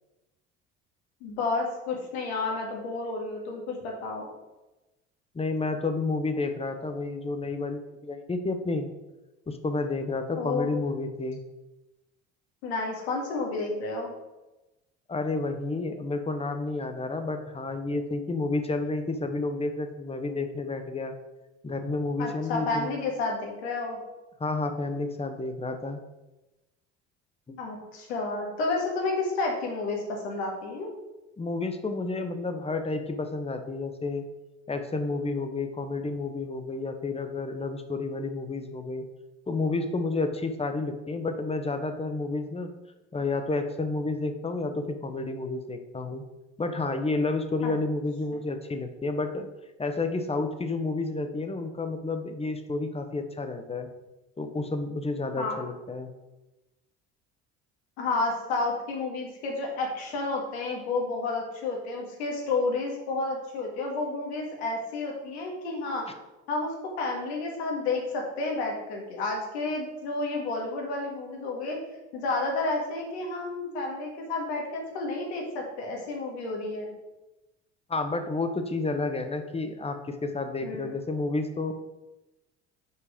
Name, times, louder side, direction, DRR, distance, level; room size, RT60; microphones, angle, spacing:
voice 1, 1.2-4.3 10.3-10.7 12.6-14.1 22.2-24.0 27.6-30.9 47.6-47.7 55.4-55.6 58.0-66.1 66.5-71.8 72.1-76.9 80.6-80.9, left 3 dB, 90° left, 0 dB, 1.8 m, -31 dB
voice 2, 5.3-8.9 9.5-11.4 15.1-21.1 21.6-22.9 24.4-26.0 27.5-27.6 31.4-34.2 34.7-39.0 39.5-42.7 43.1-46.2 46.6-49.5 49.8-53.9 54.4-56.1 77.9-81.7, left 3 dB, 20° left, 7 dB, 0.9 m, -30 dB
5.7 x 4.7 x 4.9 m, 1.0 s
supercardioid pair, 75°, 32 cm